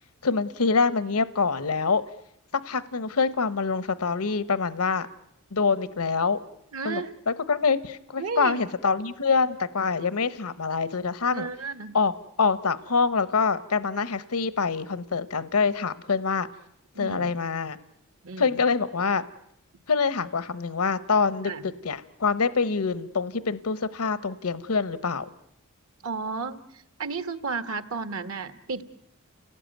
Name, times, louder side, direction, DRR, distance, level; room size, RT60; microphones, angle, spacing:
voice 1, 0.2-2.0 2.6-5.1 5.5-6.4 6.8-11.5 11.9-12.1 12.4-16.5 17.0-17.8 18.4-19.2 19.9-21.5 21.8-25.3, left 5 dB, 80° left, 16 dB, 0.9 m, -25 dB
voice 2, 6.7-7.1 8.2-8.6 11.3-12.0 16.9-17.3 18.2-18.6 21.4-21.7 26.0-28.8, right 4 dB, 65° right, 11 dB, 1.6 m, -33 dB
30.0 x 18.0 x 9.2 m, 0.78 s
head